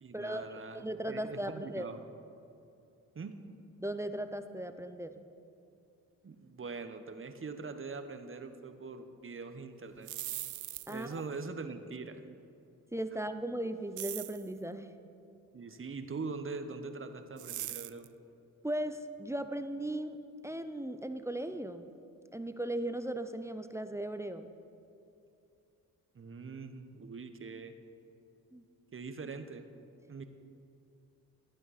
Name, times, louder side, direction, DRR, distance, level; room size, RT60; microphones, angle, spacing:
voice 1, 0.0-2.0 3.1-3.4 6.2-10.1 10.9-12.2 15.5-18.1 26.1-27.7 28.9-29.6 30.1-30.2, right 4 dB, 35° right, 9 dB, 0.9 m, -42 dB
voice 2, 0.7-1.9 3.8-5.3 10.9-11.1 12.9-14.9 18.6-20.2 20.4-21.9 22.3-24.5 28.5-28.6, right 1 dB, 10° right, 9 dB, 0.6 m, -37 dB
sound 1, 9.9-11.2 14.0-14.5 17.4-18.1, right 13 dB, 55° right, 0.4 m, -40 dB
13.5 x 9.0 x 4.1 m, 2.6 s
supercardioid pair, 55°, 36 cm